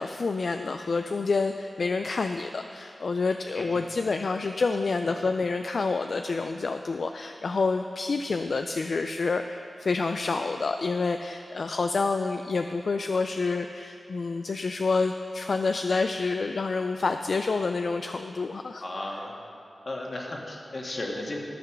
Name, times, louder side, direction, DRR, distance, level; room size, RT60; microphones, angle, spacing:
voice 1, 0.0-18.8, left 4 dB, 70° left, 6 dB, 0.3 m, -28 dB
voice 2, 18.8-19.3 19.8-21.4, left 1 dB, 50° left, -1 dB, 1.7 m, -34 dB
13.0 x 5.9 x 5.9 m, 2.7 s
wide cardioid pair, 70°, 0 cm